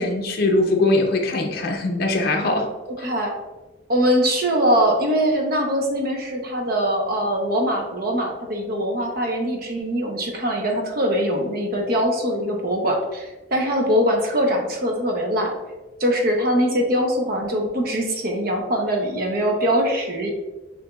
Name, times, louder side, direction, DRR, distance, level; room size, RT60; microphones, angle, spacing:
voice 1, 0.0-2.7 3.0-3.1, left 2 dB, 55° left, 3 dB, 0.6 m, -21 dB
voice 2, 3.0-3.3 3.9-15.5 16.0-20.3, equal, 50° right, 2 dB, 0.7 m, -22 dB
6.6 x 2.7 x 2.3 m, 1.1 s
head